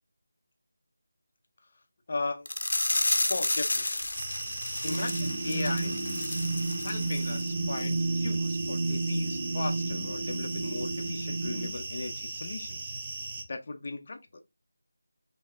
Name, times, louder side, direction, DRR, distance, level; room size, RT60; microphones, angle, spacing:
voice 1, 2.1-2.5 3.3-4.1 4.8-5.9 6.8-12.9 13.5-14.4, left 3 dB, 35° left, 0.6 m, -37 dB
sound 1, 2.5-7.5 7.8-7.9 8.3-8.4, left 2 dB, 75° left, 0.8 m, -31 dB
sound 2, 4.1-13.4, right 3 dB, 20° right, 0.7 m, -38 dB
sound 3, 4.8-11.7, right 3 dB, 60° right, 1.8 m, -32 dB
5.4 x 2.7 x 3.4 m
figure-of-eight pair, 175°, 0 cm